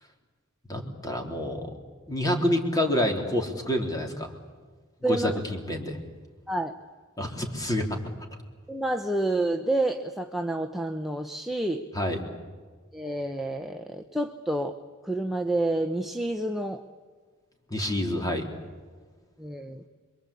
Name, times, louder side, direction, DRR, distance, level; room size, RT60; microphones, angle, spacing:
voice 1, 0.7-1.7 2.1-4.3 5.0-6.0 7.2-8.0 11.9-12.2 17.7-18.5, left 1 dB, 20° left, 2 dB, 3.7 m, -28 dB
voice 2, 5.0-5.4 6.5-6.7 8.7-11.9 12.9-14.7 15.0-16.8 19.4-19.8, right 1 dB, ahead, 4 dB, 0.9 m, -29 dB
26.5 x 23.5 x 8.5 m, 1.5 s
head